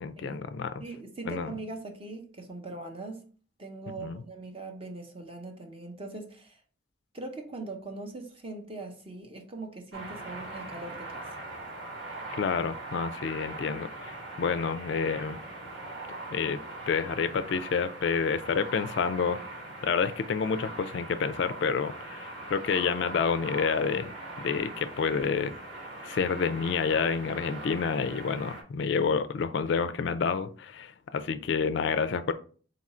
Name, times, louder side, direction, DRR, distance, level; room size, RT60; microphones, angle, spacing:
voice 1, 0.0-0.8 1.3-1.5 4.0-4.2 12.4-15.4 16.3-16.6 16.9-19.4 19.8-24.1 24.4-25.6 26.0-32.3, left 5 dB, 60° left, 0.3 m, -29 dB
voice 2, 0.8-3.3 3.6-6.6 7.1-11.4, right 2 dB, 30° right, 0.7 m, -41 dB
sound 1, 9.9-28.6, right 2 dB, 70° right, 1.2 m, -41 dB
3.9 x 2.5 x 4.2 m
head